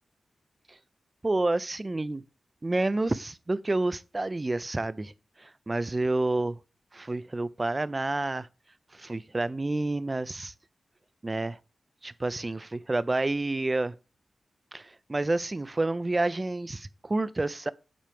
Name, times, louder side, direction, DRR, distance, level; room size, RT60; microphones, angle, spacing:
voice 1, 1.2-2.2 2.6-5.1 5.4-6.6 6.9-8.5 8.9-10.5 11.2-11.6 12.0-14.0 14.7-17.7, right 2 dB, 25° right, 0.4 m, -29 dB
7.5 x 4.4 x 3.4 m
wide cardioid pair, 95°, 0 cm